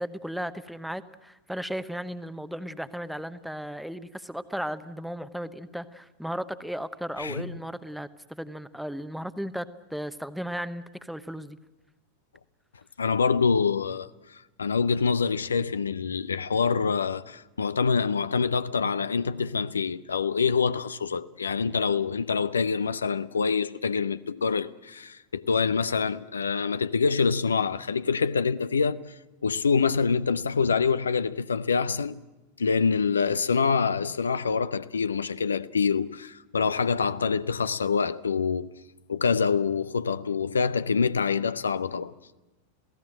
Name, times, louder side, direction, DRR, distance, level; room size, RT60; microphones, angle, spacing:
voice 1, 0.0-11.6, equal, ahead, 0.9 m, -35 dB
voice 2, 7.2-7.6 13.0-29.1 29.4-32.2 32.6-38.7 39.1-42.1, left 5 dB, 70° left, 0.7 m, -26 dB
27.5 x 16.5 x 7.8 m
figure-of-eight pair, 90°, 0 cm